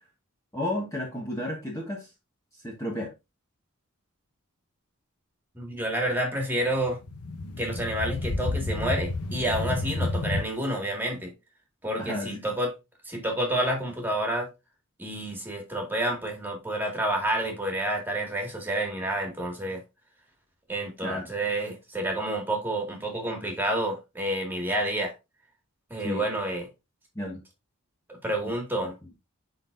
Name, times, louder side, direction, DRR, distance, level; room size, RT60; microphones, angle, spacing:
voice 1, 0.5-2.1 2.5-3.1 12.0-12.4 21.0-21.2 26.0-26.2 27.1-27.4 28.8-28.9, left 1 dB, 15° left, 1.1 m, -32 dB
voice 2, 5.5-7.0 7.6-11.3 11.8-12.7 13.1-14.5 15.0-19.8 20.7-25.1 25.9-26.7 28.1-28.9, right 1 dB, 10° right, 1.9 m, -29 dB
sound 1, 6.7-10.4, left 2 dB, 90° left, 0.9 m, -30 dB
11.0 x 4.0 x 2.6 m
head